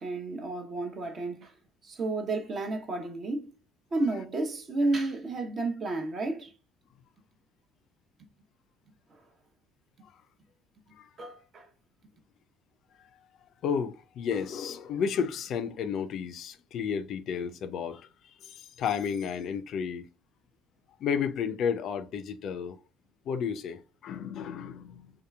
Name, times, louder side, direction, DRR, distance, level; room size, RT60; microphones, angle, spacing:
voice 1, 0.0-1.5 1.8-3.5 3.9-6.5 11.2-11.7, right 2 dB, 45° right, 0.7 m, -31 dB
voice 2, 13.6-20.1 21.0-22.8 23.3-25.1, left 7 dB, 60° left, 0.4 m, -32 dB
2.8 x 2.4 x 2.3 m
hypercardioid pair, 65°, 0 cm